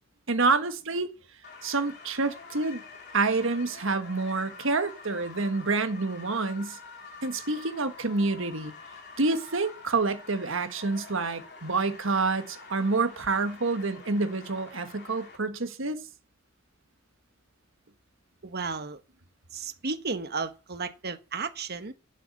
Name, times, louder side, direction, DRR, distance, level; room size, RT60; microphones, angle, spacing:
voice 1, 0.3-1.1 1.6-2.8 3.1-6.8 7.2-8.7 9.2-16.0, right 3 dB, 70° right, 1.5 m, -28 dB
sound 1, 1.4-15.4, left 4 dB, 55° left, 3.1 m, -47 dB
voice 2, 18.4-19.0 19.5-21.9, right 4 dB, 50° right, 1.3 m, -33 dB
8.2 x 8.1 x 7.7 m
head